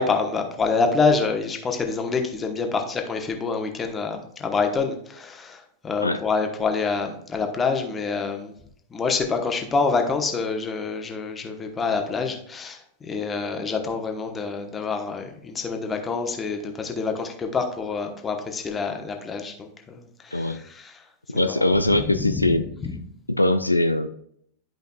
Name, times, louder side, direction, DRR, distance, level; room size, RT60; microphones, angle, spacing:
voice 1, 0.0-8.5 8.9-21.0 21.3-22.0 22.2-22.6 22.8-22.9, left 4 dB, 20° left, 4 dB, 1.1 m, -27 dB
voice 2, 21.3-22.6 23.3-24.1, left 1 dB, 85° left, 9 dB, 0.4 m, -21 dB
11.5 x 5.2 x 2.3 m, 0.69 s
figure-of-eight pair, 90°, 0 cm